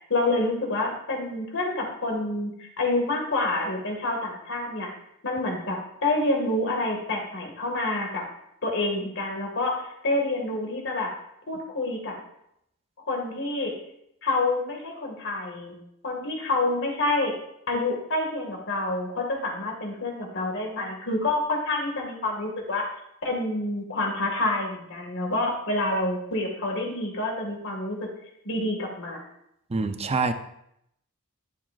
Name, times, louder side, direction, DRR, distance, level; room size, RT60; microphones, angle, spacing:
voice 1, 0.0-4.9 5.2-8.2 8.6-11.1 11.5-12.1 13.1-13.7 14.2-15.7 16.0-17.3 17.7-22.9 23.2-28.1 28.4-29.2, left 2 dB, 60° left, 0 dB, 2.0 m, -28 dB
voice 2, 29.7-30.3, right 4 dB, 30° right, 9 dB, 0.6 m, -25 dB
12.0 x 10.0 x 2.5 m, 0.77 s
head